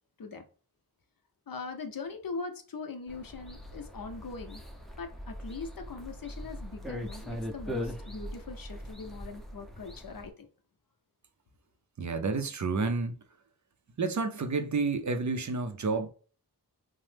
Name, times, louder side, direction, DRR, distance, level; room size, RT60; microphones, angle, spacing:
voice 1, 1.5-4.6 5.0-10.5, left 4 dB, 60° left, 0.6 m, -41 dB
sound 1, 3.1-10.3, equal, ahead, 0.5 m, -41 dB
voice 2, 12.0-13.2 14.0-16.1, right 4 dB, 50° right, 0.5 m, -30 dB
3.0 x 2.0 x 3.2 m
wide cardioid pair, 55°, 40 cm